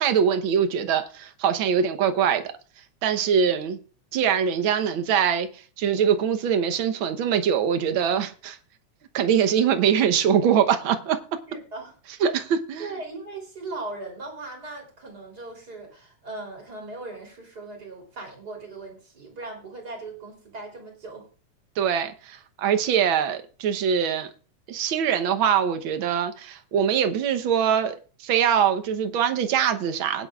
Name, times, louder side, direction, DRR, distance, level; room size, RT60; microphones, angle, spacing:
voice 1, 0.0-2.4 3.0-3.8 4.1-8.6 9.1-11.2 12.2-12.9 21.8-24.3 24.7-27.9 28.2-30.3, right 8 dB, 60° right, 1.3 m, -23 dB
voice 2, 11.5-11.9 12.2-12.3 12.8-21.3, right 3 dB, 30° right, 3.6 m, -38 dB
20.5 x 10.0 x 2.4 m
omnidirectional pair, 3.4 m